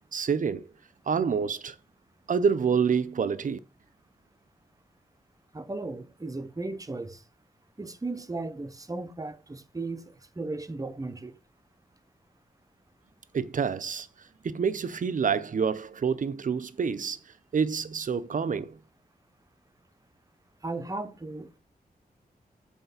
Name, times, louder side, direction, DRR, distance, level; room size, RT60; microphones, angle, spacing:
voice 1, 0.1-0.7 1.1-1.7 2.3-3.6 13.3-14.1 14.4-17.2 17.5-18.8, right 6 dB, 55° right, 0.6 m, -27 dB
voice 2, 5.5-7.2 7.8-11.3 20.6-21.6, right 2 dB, 20° right, 0.8 m, -36 dB
8.1 x 4.3 x 5.7 m
wide cardioid pair, 155°, 16 cm